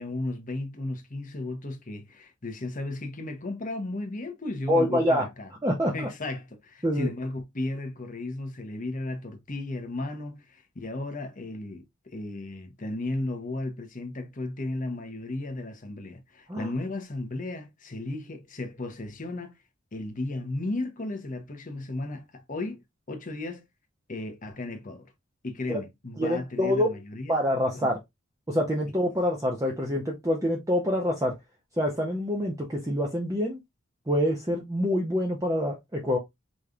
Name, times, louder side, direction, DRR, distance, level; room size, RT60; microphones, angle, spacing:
voice 1, 0.0-5.5 5.9-19.5 19.9-23.7 24.1-25.1 25.4-27.9, left 2 dB, 40° left, 0.9 m, -35 dB
voice 2, 4.7-5.2 5.6-6.1 6.8-7.1 16.5-16.7 25.7-25.8 26.2-26.9 27.3-28.0 28.5-31.3 31.8-33.6 34.1-36.2, equal, 15° right, 0.8 m, -26 dB
5.1 x 3.1 x 2.4 m
head